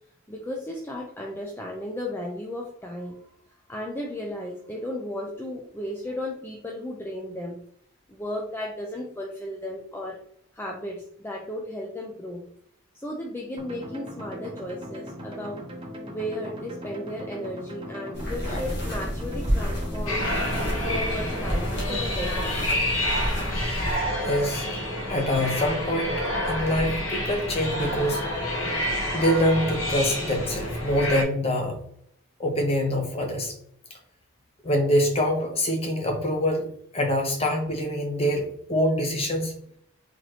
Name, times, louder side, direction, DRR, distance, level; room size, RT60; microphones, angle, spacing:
voice 1, 0.3-7.6 8.1-10.2 10.5-12.4 12.9-15.6 16.0-20.3 20.8-22.6, left 1 dB, 10° left, -1 dB, 0.4 m, -35 dB
sound 1, 13.6-21.6, equal, 25° right, 0.7 m, -39 dB
sound 2, 18.1-23.9, equal, 50° left, 1.5 m, -30 dB
sound 3, 20.1-31.2, left 1 dB, 65° left, 1.3 m, -28 dB
voice 2, 24.2-24.7 25.1-28.2 29.1-31.8 32.4-33.5 33.9-34.0 34.6-39.5, equal, 25° left, 2 dB, 0.8 m, -25 dB
4.0 x 3.0 x 3.1 m, 0.67 s
head